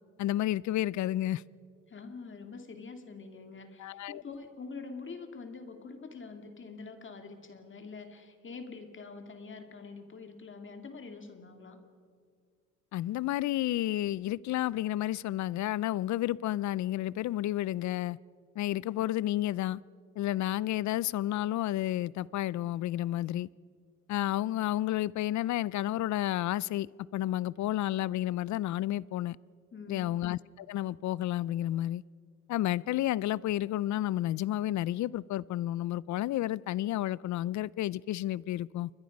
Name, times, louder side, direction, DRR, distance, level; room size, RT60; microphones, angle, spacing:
voice 1, 0.2-1.4 3.8-4.2 12.9-18.2 18.6-19.8 20.2-23.5 24.1-29.4 29.9-32.0 32.5-38.9, left 14 dB, 70° left, 0.5 m, -31 dB
voice 2, 1.9-11.8 29.7-30.1, left 4 dB, 40° left, 2.5 m, -45 dB
29.0 x 22.0 x 5.3 m
cardioid pair, 90°, 30 cm